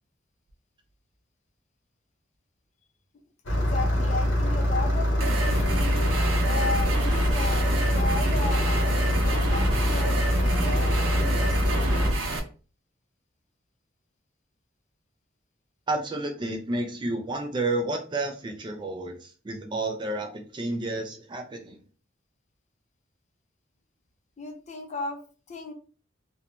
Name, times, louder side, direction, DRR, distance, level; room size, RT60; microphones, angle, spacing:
Engine starting, 3.5-12.1, equal, 65° left, 0.8 m, -24 dB
voice 1, 3.5-6.0 6.4-12.0 24.4-25.7, left 3 dB, 35° left, 5 dB, 0.4 m, -35 dB
sound 1, 5.2-12.4, right 2 dB, 90° right, 0.5 m, -30 dB
voice 2, 15.9-21.8, right 2 dB, 25° right, 4 dB, 0.3 m, -31 dB
2.5 x 2.1 x 2.9 m, 0.37 s
head